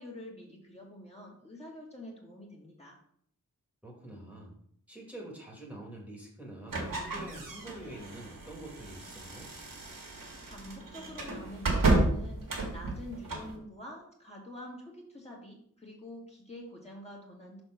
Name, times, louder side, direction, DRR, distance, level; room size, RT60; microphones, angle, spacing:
voice 1, 0.0-3.0 10.4-17.6, left 1 dB, 20° left, -3 dB, 2.1 m, -47 dB
voice 2, 3.8-4.5 4.9-9.5, right 1 dB, 5° right, -3 dB, 2.0 m, -46 dB
sound 1, 6.7-13.5, right 2 dB, 80° right, 1.8 m, -32 dB
5.7 x 4.4 x 5.9 m, 0.64 s
wide cardioid pair, 75°, 32 cm